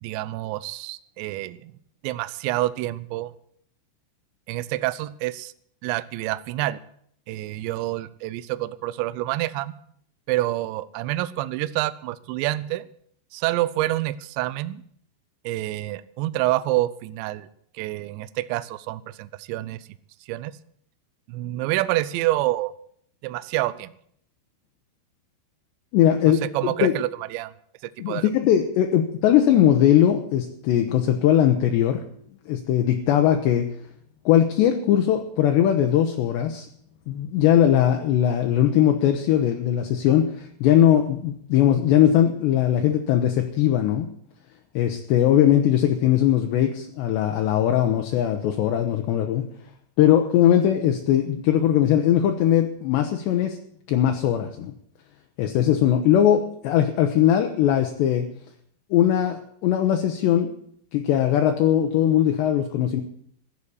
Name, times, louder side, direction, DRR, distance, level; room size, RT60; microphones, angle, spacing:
voice 1, 0.0-1.7 2.0-3.3 4.5-5.5 5.8-6.8 7.3-9.8 10.3-12.9 13.3-14.8 15.4-17.5 17.7-19.8 20.3-20.5 21.3-22.7 23.2-23.9 26.4-27.5 27.8-28.3, right 16 dB, 80° right, 16 dB, 2.7 m, -27 dB
voice 2, 25.9-26.9 28.0-32.0 32.5-33.7 34.3-36.7 37.1-44.1 44.8-49.5 50.0-53.6 53.9-54.7 55.4-58.3 58.9-60.5 60.9-63.0, left 10 dB, 75° left, 5 dB, 2.8 m, -20 dB
14.5 x 8.3 x 9.9 m, 0.65 s
omnidirectional pair, 5.8 m